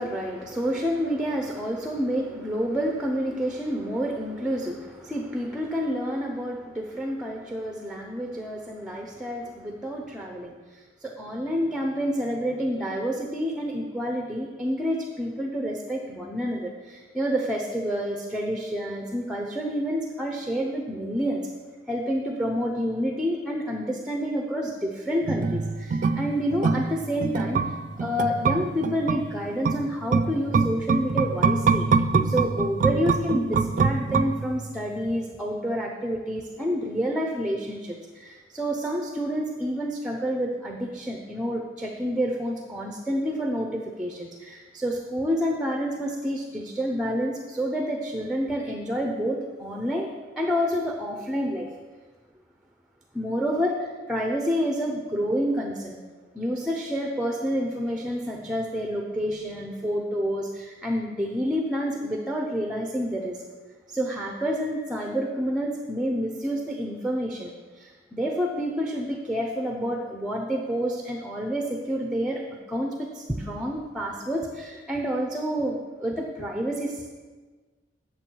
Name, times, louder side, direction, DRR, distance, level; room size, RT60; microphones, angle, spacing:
voice 1, 0.0-21.4 21.9-27.6 28.0-31.9 32.1-50.1 50.4-51.7 53.1-55.9 56.3-63.4 63.9-67.5 67.7-72.4 72.7-77.0, equal, 5° right, 1 dB, 0.6 m, -28 dB
sound 1, 25.2-34.8 35.1-35.2, right 4 dB, 45° right, 0.3 m, -25 dB
8.7 x 6.8 x 4.5 m, 1.4 s
head